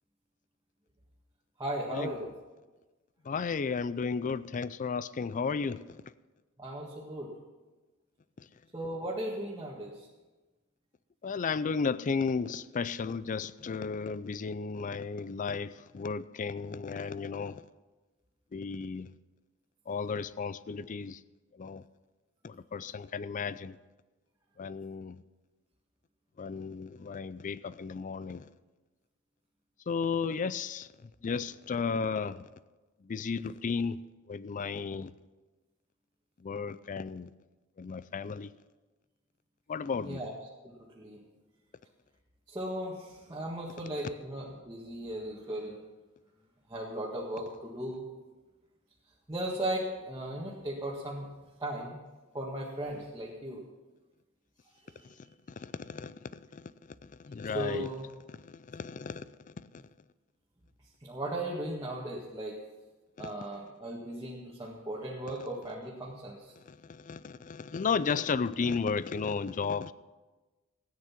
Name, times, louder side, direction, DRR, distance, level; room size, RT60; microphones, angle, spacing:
voice 1, 1.6-2.3 6.6-7.3 8.7-10.1 40.0-40.3 40.6-41.2 42.5-45.8 46.7-48.0 49.3-51.3 51.6-52.0 52.3-53.6 54.9-55.0 57.5-58.0 61.0-62.6 63.2-66.5, right 1 dB, 20° right, 1.7 m, -37 dB
voice 2, 3.3-6.0 11.2-17.6 18.5-19.1 19.9-21.2 21.6-21.8 22.4-23.7 24.6-25.2 26.4-28.5 29.9-30.9 31.2-32.4 33.1-34.0 34.3-35.1 36.4-37.3 37.8-38.5 39.7-40.2 55.6-56.1 56.5-56.7 57.2-57.9 58.4-59.2 63.2-63.3 66.7-69.9, left 5 dB, 35° left, 0.4 m, -34 dB
15.5 x 9.4 x 5.8 m
head